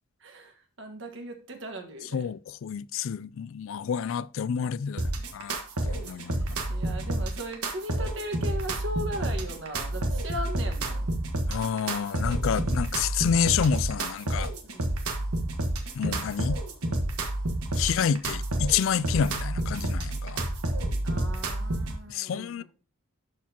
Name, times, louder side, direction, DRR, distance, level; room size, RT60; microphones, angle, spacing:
voice 1, 0.2-2.3 6.0-11.1 14.6-14.9 17.7-17.9 21.0-22.6, equal, 55° right, 1.5 m, -38 dB
voice 2, 2.1-5.5 5.8-6.6 11.5-14.5 16.0-16.6 17.7-20.4 22.1-22.6, left 7 dB, 65° left, 0.3 m, -29 dB
sound 1, 5.0-22.0, right 1 dB, 85° right, 1.4 m, -29 dB
12.0 x 4.5 x 2.9 m
head